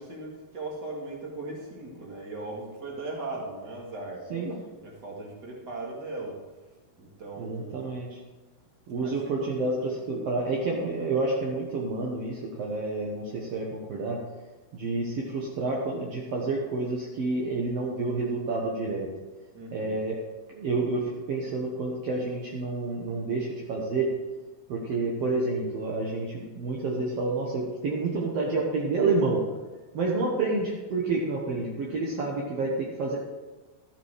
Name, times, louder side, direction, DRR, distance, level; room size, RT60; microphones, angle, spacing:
voice 1, 0.0-4.3 4.8-6.4 7.0-8.0 9.0-9.7 19.5-20.0, right 2 dB, 30° right, -2 dB, 2.3 m, -38 dB
voice 2, 7.4-8.1 8.9-14.2 14.7-19.1 19.7-20.2 20.5-24.1 24.7-29.4 29.9-33.2, right 3 dB, 65° right, -2 dB, 1.6 m, -29 dB
13.5 x 7.5 x 4.9 m, 1.2 s
omnidirectional pair, 4.5 m